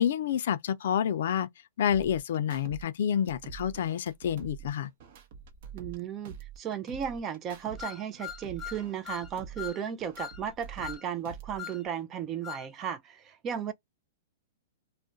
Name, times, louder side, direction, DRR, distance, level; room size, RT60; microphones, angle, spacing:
voice 1, 0.0-1.5 1.8-4.9, left 9 dB, 70° left, 0.4 m, -28 dB
sound 1, 1.9-2.8 3.1-6.0 6.2-7.8 8.1-11.0 11.2-11.9, right 7 dB, 55° right, 0.8 m, -46 dB
voice 2, 5.7-13.7, right 8 dB, 25° right, 0.4 m, -35 dB
sound 2, 7.8-9.3 9.6-9.8 10.2-10.4 10.8-11.0 11.6-11.8 12.4-12.7, left 9 dB, 15° left, 0.6 m, -40 dB
2.4 x 2.1 x 3.8 m
hypercardioid pair, 145°, 0 cm